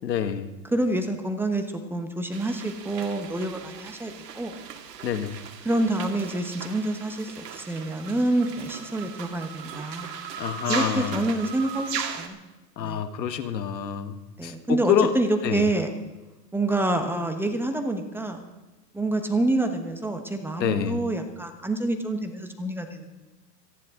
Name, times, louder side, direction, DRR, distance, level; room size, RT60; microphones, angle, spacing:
voice 1, 0.0-0.5 5.0-5.4 10.4-11.2 12.8-14.2 14.4-15.1 15.4-15.7 20.6-21.0, left 8 dB, 80° left, 10 dB, 1.6 m, -26 dB
voice 2, 0.7-4.5 5.6-10.2 10.7-12.4 12.8-13.0 14.4-15.9 16.5-18.4 18.9-23.1, right 2 dB, 5° right, 6 dB, 1.1 m, -27 dB
sound 1, 2.3-12.3, right 7 dB, 75° right, 2.4 m, -37 dB
27.5 x 11.0 x 3.7 m, 1.1 s
hypercardioid pair, 135°, 49 cm